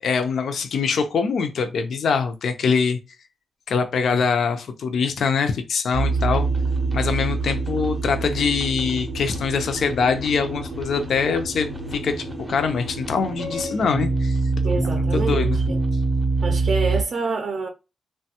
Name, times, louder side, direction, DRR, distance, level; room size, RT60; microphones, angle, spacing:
voice 1, 0.0-3.0 3.7-6.5 6.9-14.4 14.8-15.6, left 5 dB, 70° left, 0.4 m, -23 dB
sound 1, 5.9-17.0, right 3 dB, 5° right, 0.5 m, -25 dB
voice 2, 14.6-15.6 16.4-17.7, right 4 dB, 55° right, 0.4 m, -26 dB
3.2 x 2.2 x 2.7 m
wide cardioid pair, 170°, 0 cm